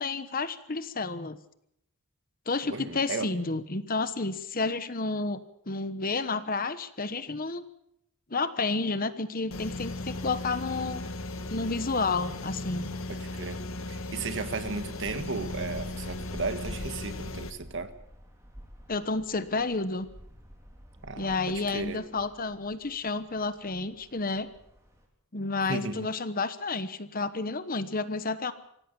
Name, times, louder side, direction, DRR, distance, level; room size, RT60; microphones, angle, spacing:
voice 1, 0.0-1.4 2.5-5.4 5.7-7.6 8.3-11.0 11.5-12.9 18.9-20.1 21.1-24.5 25.3-28.5, left 3 dB, 40° left, 12 dB, 1.1 m, -30 dB
voice 2, 2.7-3.3 13.1-13.6 13.9-17.9 21.0-22.0 25.7-26.1, right 3 dB, 55° right, 9 dB, 1.6 m, -35 dB
sound 1, 9.5-17.5, left 2 dB, 65° left, 1.6 m, -37 dB
sound 2, 13.9-25.1, equal, 15° right, 4.0 m, -49 dB
25.5 x 17.0 x 7.0 m, 0.77 s
head